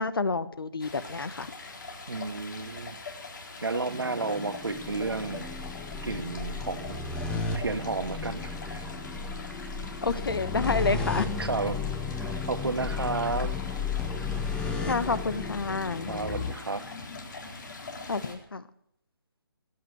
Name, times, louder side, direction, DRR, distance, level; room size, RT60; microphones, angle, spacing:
voice 1, 0.0-1.5 10.0-11.3 14.9-16.1 18.1-18.6, left 3 dB, 75° left, 1.3 m, -29 dB
Stream, 0.8-18.3, left 3 dB, 55° left, 4.2 m, -43 dB
voice 2, 2.1-3.0 3.6-5.5 6.0-7.0 7.5-8.8 11.4-11.8 12.2-13.6 16.1-16.8, right 3 dB, 85° right, 1.3 m, -32 dB
sound 1, 3.9-16.5, left 4 dB, 5° left, 1.4 m, -34 dB
18.5 x 8.9 x 8.0 m
figure-of-eight pair, 145°, 12 cm